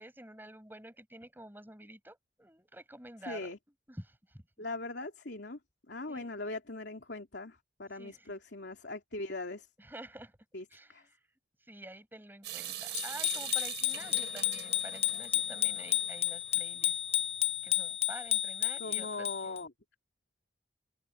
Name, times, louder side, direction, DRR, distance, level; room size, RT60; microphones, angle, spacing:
voice 1, 0.0-3.5 3.9-4.4 6.1-6.4 7.9-8.4 9.8-10.4 10.7-11.3 11.6-17.0 17.6-19.6, right 1 dB, 10° right, 5.6 m, -49 dB
voice 2, 3.2-3.6 4.6-5.6 5.9-9.7 10.5-11.0 18.8-19.7, left 2 dB, 75° left, 2.9 m, -40 dB
Water tap faucet / Sink (filling or washing) / Drip, 12.4-16.5, right 12 dB, 75° right, 3.6 m, -43 dB
Bicycle bell, 12.9-19.6, left 11 dB, 35° left, 0.7 m, -32 dB
open air
head